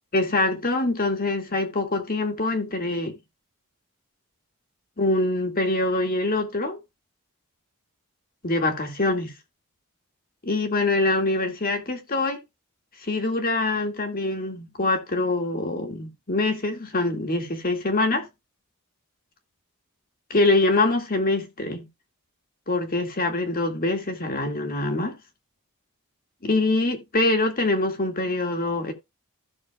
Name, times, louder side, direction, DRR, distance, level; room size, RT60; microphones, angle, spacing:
voice 1, 0.1-3.2 5.0-6.8 8.4-9.3 10.4-12.4 13.0-18.3 20.3-21.9 22.7-25.2 26.4-28.9, left 2 dB, 40° left, 2.1 m, -24 dB
15.5 x 6.3 x 2.4 m
head